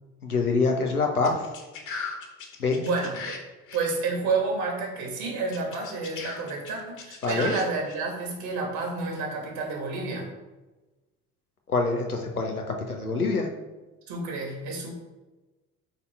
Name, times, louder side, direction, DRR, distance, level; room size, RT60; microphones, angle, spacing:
voice 1, 0.2-1.4 2.6-2.8 7.2-7.5 11.7-13.5, left 3 dB, 85° left, 2 dB, 1.0 m, -25 dB
sound 1, 1.2-3.4 3.7-3.8 5.5-7.9, left 5 dB, 45° left, 1.8 m, -38 dB
voice 2, 2.8-3.3 3.7-10.3 14.1-14.9, right 4 dB, 55° right, 0 dB, 2.5 m, -30 dB
8.3 x 4.3 x 4.7 m, 1.1 s
figure-of-eight pair, 55°, 43 cm